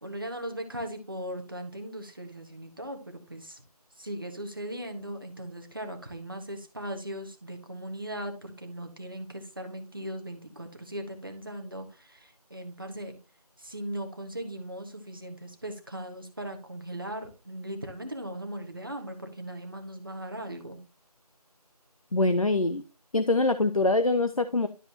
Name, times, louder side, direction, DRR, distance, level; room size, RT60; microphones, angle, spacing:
voice 1, 0.0-3.6 4.0-13.2 13.6-20.8, right 1 dB, 35° right, 4 dB, 1.4 m, -38 dB
voice 2, 22.1-22.8 23.1-24.7, left 2 dB, 60° left, 10 dB, 0.7 m, -24 dB
12.0 x 5.0 x 2.9 m, 0.30 s
figure-of-eight pair, 180°, 20 cm